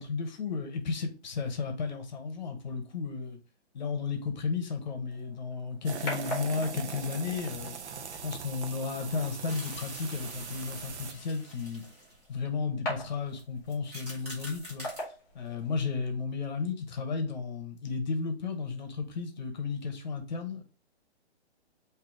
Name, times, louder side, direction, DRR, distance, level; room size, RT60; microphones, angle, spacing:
voice 1, 0.0-3.4 3.7-7.8 8.2-11.8 12.3-14.9 15.3-20.6, left 5 dB, 40° left, 0.8 m, -33 dB
sound 1, 5.1-16.1, left 1 dB, 10° left, 0.9 m, -44 dB
sound 2, 5.8-11.1, right 7 dB, 80° right, 0.7 m, -41 dB
sound 3, 9.4-12.4 13.3-13.4 13.7-15.0, equal, 15° right, 0.6 m, -46 dB
3.9 x 2.7 x 4.8 m
hypercardioid pair, 170°, 34 cm